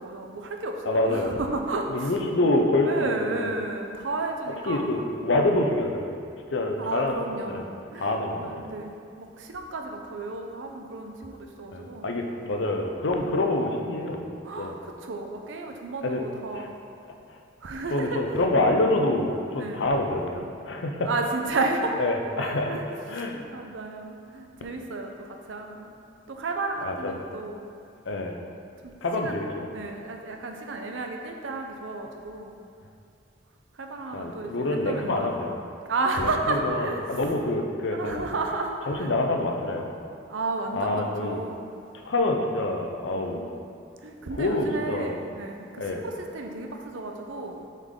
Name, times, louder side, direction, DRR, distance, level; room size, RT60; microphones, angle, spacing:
voice 1, 0.0-2.1 2.8-5.0 6.8-12.1 13.1-13.3 14.4-16.8 17.6-18.2 19.6-19.9 21.0-22.0 22.4-25.9 26.3-27.7 28.8-28.9 29.2-29.4 29.7-32.6 33.7-35.4 35.9-37.2 37.9-39.1 40.3-41.7 43.1-43.5 44.0-47.6, right 3 dB, 85° right, 3 dB, 0.7 m, -32 dB
voice 2, 0.9-1.4 1.9-3.5 4.7-6.1 6.5-7.1 7.5-7.7 8.0-8.6 11.7-14.3 14.6-14.8 16.0-16.2 16.5-16.7 17.9-21.1 22.0-22.8 23.1-23.4 26.8-27.2 28.1-28.4 29.0-29.7 34.1-35.6 36.2-38.3 38.9-39.9 40.7-41.4 42.1-43.5 44.4-45.2 45.8-46.0, left 2 dB, 70° left, 3 dB, 0.7 m, -26 dB
8.2 x 4.1 x 3.7 m, 2.4 s
head